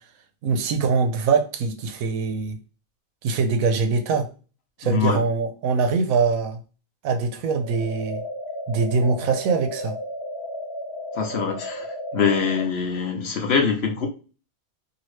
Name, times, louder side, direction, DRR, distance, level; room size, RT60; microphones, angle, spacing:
voice 1, 0.4-2.6 3.2-4.3 4.8-6.6 7.0-8.2 8.7-10.0, right 4 dB, 75° right, 7 dB, 1.0 m, -23 dB
voice 2, 4.8-5.2 11.1-11.9 12.1-14.1, left 6 dB, 60° left, 4 dB, 0.8 m, -23 dB
sound 1, 7.6-12.6, equal, 15° left, 1.0 m, -34 dB
2.8 x 2.7 x 3.1 m, 0.35 s
omnidirectional pair, 1.5 m